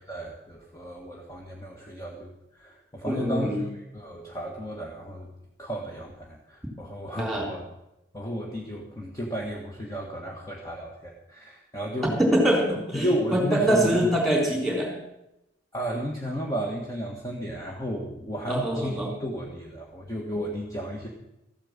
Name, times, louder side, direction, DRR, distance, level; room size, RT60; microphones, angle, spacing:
voice 1, 0.0-5.3 5.6-7.6 8.1-12.2 12.9-14.1 15.7-21.1, equal, 20° left, -1 dB, 1.5 m, -33 dB
voice 2, 3.1-3.6 7.2-7.5 12.2-14.9 18.5-19.1, right 1 dB, ahead, -1 dB, 3.7 m, -24 dB
14.5 x 8.9 x 7.3 m, 0.88 s
head